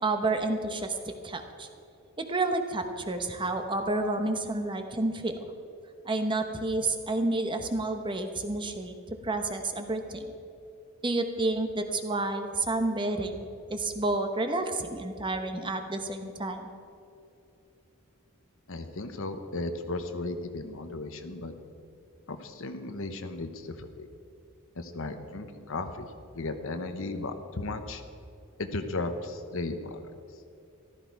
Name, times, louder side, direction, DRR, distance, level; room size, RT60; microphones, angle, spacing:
voice 1, 0.0-1.7 2.2-5.3 6.0-10.3 11.0-16.7, right 2 dB, 20° right, 6 dB, 0.9 m, -30 dB
voice 2, 18.7-21.5 22.3-24.1 24.8-26.1 26.3-28.0 28.6-30.1, left 2 dB, 60° left, 8 dB, 1.0 m, -35 dB
14.5 x 13.0 x 4.7 m, 2.6 s
head